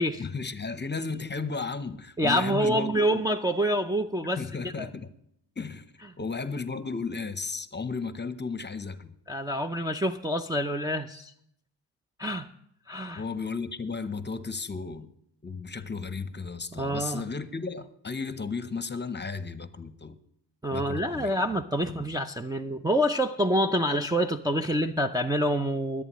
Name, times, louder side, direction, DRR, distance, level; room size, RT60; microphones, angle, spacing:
voice 1, 0.2-3.2 4.4-5.1 5.6-5.9 6.2-9.2 13.2-15.1 15.4-20.2 20.7-21.3 21.8-22.2, left 4 dB, 25° left, 0.9 m, -34 dB
voice 2, 2.2-4.4 4.8-4.9 9.3-11.3 12.2-12.5 12.9-13.2 16.7-17.2 20.6-26.0, equal, 10° right, 0.5 m, -27 dB
23.0 x 8.3 x 3.1 m
supercardioid pair, 55°, 45 cm